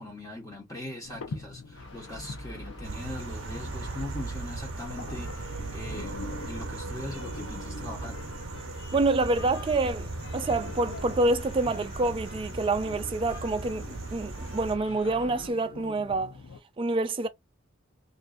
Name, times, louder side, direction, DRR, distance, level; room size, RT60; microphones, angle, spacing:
voice 1, 0.0-8.2, left 1 dB, 15° left, 0.9 m, -41 dB
sound 1, 1.0-16.6, left 3 dB, 85° left, 0.6 m, -45 dB
sound 2, 1.7-15.5, left 1 dB, 60° left, 1.0 m, -46 dB
sound 3, 2.8-14.8, right 3 dB, 70° right, 0.6 m, -38 dB
voice 2, 8.9-16.3 16.8-17.3, right 2 dB, 25° right, 0.3 m, -27 dB
2.6 x 2.5 x 2.4 m
head